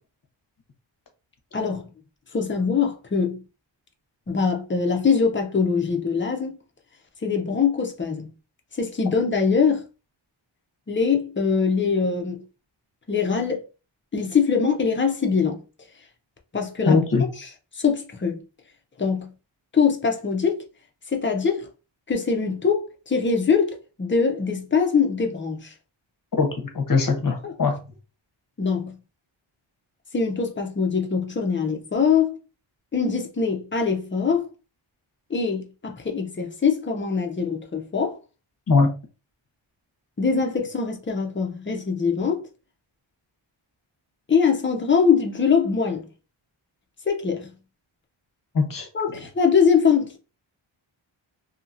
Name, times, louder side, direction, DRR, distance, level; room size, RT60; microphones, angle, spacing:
voice 1, 1.5-1.8 2.3-3.4 4.3-6.6 7.2-8.3 8.7-9.8 10.9-12.4 13.1-13.6 14.1-15.6 16.5-17.0 17.7-18.4 19.0-19.3 19.7-20.6 21.1-21.7 22.1-25.7 27.4-27.5 28.6-29.0 30.1-32.4 32.9-34.5 35.3-38.2 40.2-42.5 44.3-46.1 47.1-47.5 48.9-50.2, left 5 dB, 25° left, 0.5 m, -23 dB
voice 2, 16.8-17.2 26.4-27.8 38.7-38.9 48.5-48.9, left 4 dB, 45° left, 0.8 m, -21 dB
2.8 x 2.7 x 2.5 m
wide cardioid pair, 130°, 48 cm